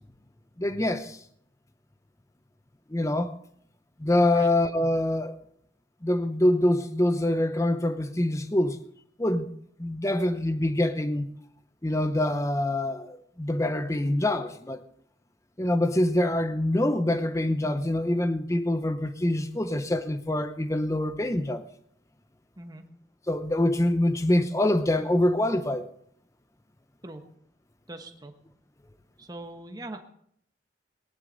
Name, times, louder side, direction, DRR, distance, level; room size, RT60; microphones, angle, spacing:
voice 1, 0.6-1.2 2.9-3.3 4.0-5.4 6.0-8.8 9.2-9.5 9.8-11.3 11.8-14.8 15.6-21.6 23.3-25.9, left 1 dB, 15° left, 0.7 m, -25 dB
voice 2, 27.9-28.3 29.2-30.0, right 2 dB, 20° right, 1.2 m, -41 dB
18.5 x 11.5 x 4.0 m
head